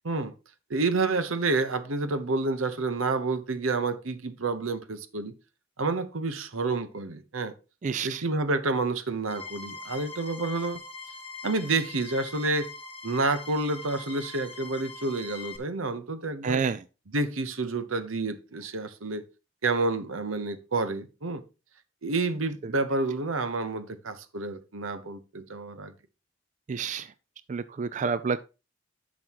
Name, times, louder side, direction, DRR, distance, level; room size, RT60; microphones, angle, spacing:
voice 1, 0.7-5.3 5.8-7.5 8.0-10.8 11.4-12.7 13.0-16.6 17.1-19.2 19.6-21.4 22.0-25.9, right 3 dB, 90° right, 1.0 m, -29 dB
voice 2, 7.8-8.2 16.4-16.8 26.7-27.1 27.5-28.5, right 5 dB, 35° right, 0.3 m, -29 dB
sound 1, 9.3-15.6, left 3 dB, 30° left, 1.3 m, -42 dB
11.0 x 6.4 x 3.0 m
head